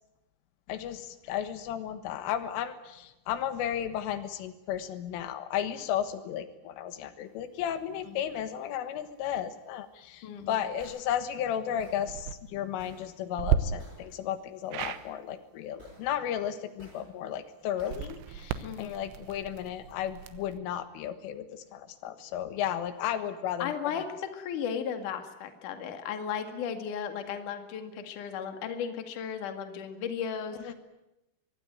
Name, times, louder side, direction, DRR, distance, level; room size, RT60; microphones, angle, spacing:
voice 1, 0.7-23.7 24.0-24.1 30.6-30.7, left 10 dB, 85° left, 10 dB, 4.0 m, -34 dB
voice 2, 10.2-10.6 18.6-19.0 23.6-30.7, left 7 dB, 50° left, 7 dB, 3.0 m, -35 dB
sound 1, 10.8-11.0 11.8-12.0 12.8-13.0 13.8-14.0 14.8-15.0 15.8-16.0 16.8-17.0 17.8-18.0, equal, 10° right, 7.4 m, -52 dB
sound 2, 12.0-12.4 13.4-13.6 14.7-15.0 17.8-20.6, right 10 dB, 90° right, 3.7 m, -33 dB
24.0 x 22.0 x 9.3 m, 0.94 s
omnidirectional pair, 5.6 m